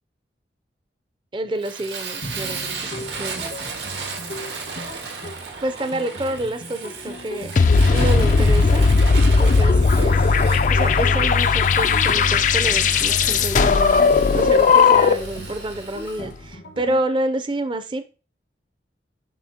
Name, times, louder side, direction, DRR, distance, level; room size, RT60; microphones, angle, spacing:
voice 1, 1.3-3.5 5.6-7.5 7.9-8.8 9.4-10.3 10.7-18.1, right 1 dB, 25° right, 10 dB, 0.5 m, -28 dB
Fire, 1.6-16.2, right 5 dB, 80° right, 1.3 m, -35 dB
sound 1, 2.2-17.0, equal, 85° left, 1.7 m, -37 dB
sound 2, 7.6-15.4, left 5 dB, 45° left, 0.4 m, -17 dB
7.4 x 5.6 x 2.8 m, 0.33 s
head